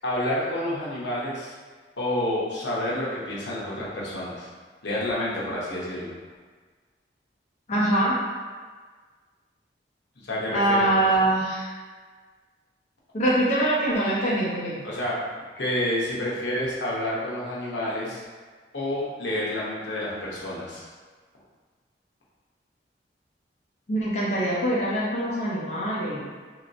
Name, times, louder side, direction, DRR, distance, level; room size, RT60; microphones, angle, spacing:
voice 1, 0.0-1.5 2.0-4.5 4.8-6.1 10.2-10.8 14.8-15.2 15.6-18.2 18.7-20.8, left 1 dB, 75° left, -6 dB, 0.8 m, -29 dB
voice 2, 7.7-8.2 10.5-11.7 13.1-14.9 23.9-26.2, right 1 dB, 35° left, -7 dB, 0.5 m, -23 dB
3.1 x 2.8 x 2.6 m, 1.5 s
head